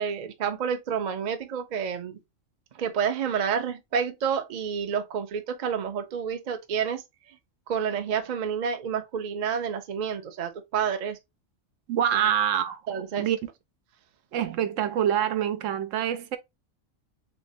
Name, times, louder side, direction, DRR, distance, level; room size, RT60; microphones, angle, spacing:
voice 1, 0.0-2.2 2.8-7.0 7.7-11.2 12.1-12.2 12.9-13.3, right 7 dB, 50° right, 0.5 m, -29 dB
voice 2, 11.9-13.4 14.3-16.4, right 9 dB, 75° right, 0.9 m, -26 dB
3.5 x 3.1 x 2.6 m
omnidirectional pair, 1.3 m